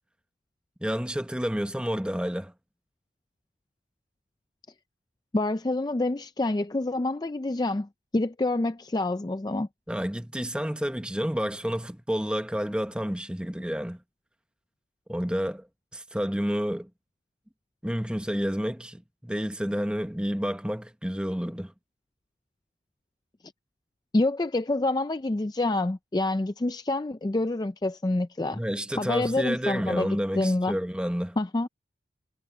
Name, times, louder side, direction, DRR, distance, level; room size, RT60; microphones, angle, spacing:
voice 1, 0.8-2.5 9.9-14.0 15.1-15.7 15.9-16.9 17.8-21.7 28.5-31.4, equal, 5° right, 1.1 m, -30 dB
voice 2, 5.3-9.7 24.1-28.6 29.0-30.8 31.4-31.7, left 2 dB, 20° left, 0.4 m, -27 dB
head